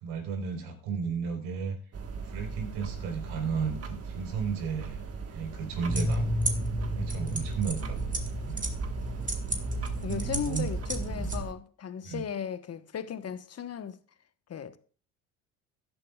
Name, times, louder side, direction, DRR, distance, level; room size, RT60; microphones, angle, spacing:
voice 1, 0.0-1.8 2.2-6.2 6.9-8.0 8.5-8.7 10.1-10.7 11.2-11.3 12.0-12.2, right 5 dB, 75° right, 4.2 m, -34 dB
sound 1, 1.9-11.5, right 5 dB, 35° right, 1.5 m, -39 dB
sound 2, 5.9-11.4, right 1 dB, 20° right, 2.0 m, -32 dB
voice 2, 10.0-14.0 14.5-14.8, left 8 dB, 35° left, 1.2 m, -36 dB
15.5 x 11.0 x 2.4 m
hypercardioid pair, 70°, 41 cm